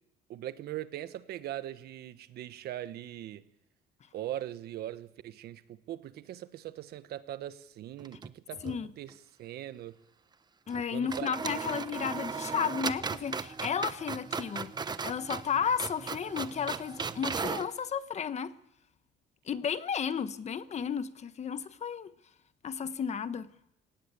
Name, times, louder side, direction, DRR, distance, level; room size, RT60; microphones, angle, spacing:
voice 1, 0.3-3.4 4.1-10.0 10.9-11.4, right 12 dB, 70° right, 1.4 m, -41 dB
sound 1, 8.0-8.8 9.1-9.2 10.7-10.8 11.1-17.7, right 5 dB, 25° right, 1.0 m, -37 dB
voice 2, 10.7-14.7 15.0-18.5 19.4-22.1 22.6-23.5, left 7 dB, 40° left, 1.2 m, -33 dB
29.5 x 18.0 x 8.4 m
cardioid pair, 110°, 17 cm